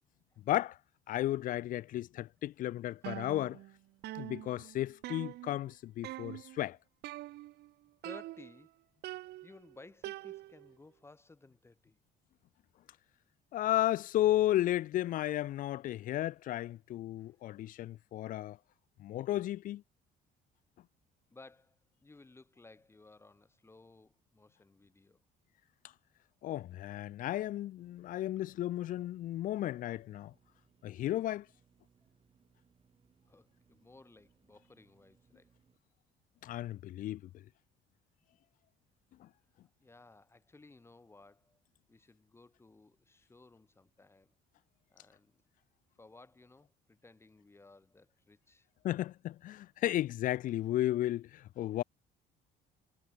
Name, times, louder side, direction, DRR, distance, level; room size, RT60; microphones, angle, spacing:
voice 1, 0.5-0.8 1.1-3.6 4.1-6.8 13.5-18.6 19.0-19.8 26.4-30.3 30.8-31.5 36.4-37.2 39.2-39.3 48.8-51.8, left 14 dB, 55° left, 0.4 m, -33 dB
sound 1, 3.0-3.8 4.0-5.7 6.0-6.6 7.0-7.7 8.0-8.7 9.0-10.7, right 17 dB, 75° right, 1.0 m, -45 dB
voice 2, 8.0-8.7 9.4-12.0 17.2-17.3 17.8-17.9 21.3-25.2 33.3-35.5 39.8-41.6 41.9-44.3 44.9-45.4 46.0-48.7, left 3 dB, 15° left, 1.1 m, -58 dB
sound 2, 27.8-35.8, right 6 dB, 35° right, 2.5 m, -70 dB
cardioid pair, 110°, 17 cm